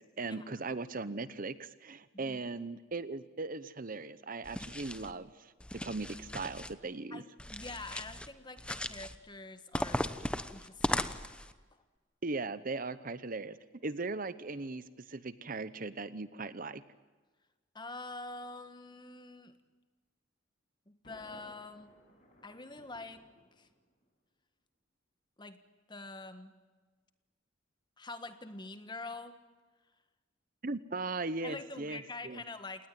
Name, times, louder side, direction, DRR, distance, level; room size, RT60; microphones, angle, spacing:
voice 1, 0.0-7.2 12.2-13.6 13.8-16.8 30.6-32.4, right 3 dB, 45° right, 15 dB, 0.9 m, -38 dB
sound 1, 4.4-5.1 5.6-6.7 7.4-8.3 8.6-9.2 9.7-11.5, left 1 dB, 5° left, 0.9 m, -37 dB
voice 2, 7.1-10.1 10.5-11.2 17.7-19.5 20.9-21.9 22.4-23.2 23.6-23.7 25.4-25.6 25.9-26.5 28.0-29.4 31.4-32.9, left 3 dB, 25° left, 9 dB, 1.6 m, -45 dB
Thunder, 21.0-24.0, equal, 40° left, 7.5 m, -60 dB
28.5 x 19.0 x 9.4 m, 1.3 s
head